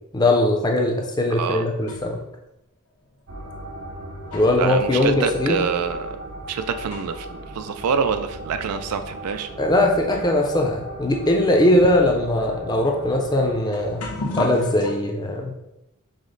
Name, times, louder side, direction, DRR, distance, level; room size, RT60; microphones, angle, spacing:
voice 1, 0.1-2.2 4.3-5.6 9.6-14.0 14.4-15.5, left 1 dB, 20° left, 1 dB, 0.5 m, -20 dB
voice 2, 1.3-1.7 4.6-6.2 6.5-9.5, right 6 dB, 85° right, 9 dB, 0.4 m, -26 dB
sound 1, 1.9-2.3 3.2-3.3 3.9-7.4 7.7-7.8 8.6-8.7 9.6-9.7 10.0-14.9, left 2 dB, 85° left, 0.9 m, -37 dB
sound 2, 3.3-13.6, right 1 dB, 60° right, 0.7 m, -37 dB
5.0 x 2.0 x 3.8 m, 0.91 s
head